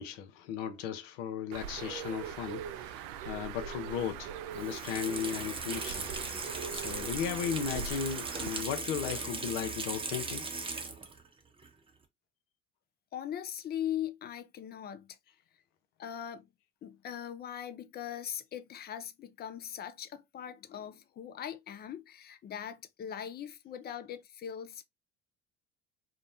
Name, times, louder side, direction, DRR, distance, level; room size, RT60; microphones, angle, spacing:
voice 1, 0.0-10.4, left 8 dB, 70° left, 0.6 m, -36 dB
Bird, 1.5-8.6, right 8 dB, 60° right, 0.5 m, -42 dB
Water tap faucet / Sink (filling or washing), 4.5-11.3 11.6-11.7, right 3 dB, 15° right, 0.7 m, -38 dB
voice 2, 13.1-15.2 16.0-16.5 16.8-24.8, left 10 dB, 30° left, 0.4 m, -40 dB
2.9 x 2.0 x 2.5 m
hypercardioid pair, 65°, 37 cm